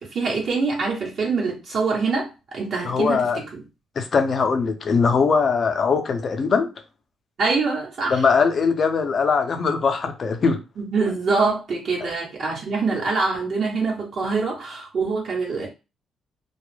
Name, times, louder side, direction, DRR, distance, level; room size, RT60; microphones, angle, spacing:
voice 1, 0.0-3.6 7.4-8.2 10.8-15.7, right 4 dB, 60° right, 0.9 m, -24 dB
voice 2, 2.9-3.4 4.0-6.7 8.1-10.6, left 5 dB, 50° left, 0.5 m, -21 dB
2.3 x 2.1 x 3.1 m
cardioid pair, 90°, 0 cm